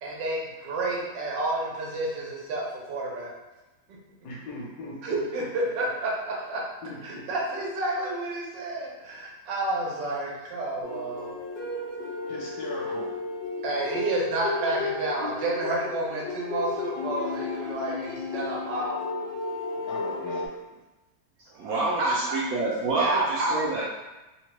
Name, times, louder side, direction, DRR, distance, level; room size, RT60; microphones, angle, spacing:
voice 1, 0.0-3.3 5.0-6.6 7.0-11.4 13.6-19.0 22.0-22.4 22.9-23.8, right 2 dB, 90° right, -2 dB, 1.4 m, -30 dB
voice 2, 4.2-5.2 6.8-7.2 12.3-13.1 13.6-13.7 19.9-20.5, left 2 dB, 70° left, -5 dB, 1.3 m, -39 dB
sound 1, 10.8-20.5, left 3 dB, 85° left, 1.5 m, -33 dB
voice 3, 21.5-23.8, right 2 dB, 70° right, -5 dB, 0.8 m, -27 dB
3.5 x 2.1 x 2.9 m, 1.1 s
omnidirectional pair, 1.9 m